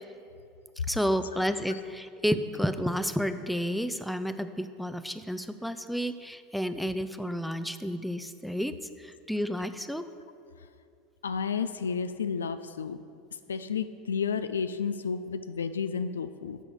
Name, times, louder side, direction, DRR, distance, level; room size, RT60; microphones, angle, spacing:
voice 1, 0.9-10.0, equal, ahead, 10 dB, 0.5 m, -31 dB
voice 2, 11.2-13.0 13.5-16.6, left 6 dB, 75° left, 11 dB, 0.3 m, -31 dB
8.9 x 6.3 x 6.5 m, 2.4 s
figure-of-eight pair, 75°, 0 cm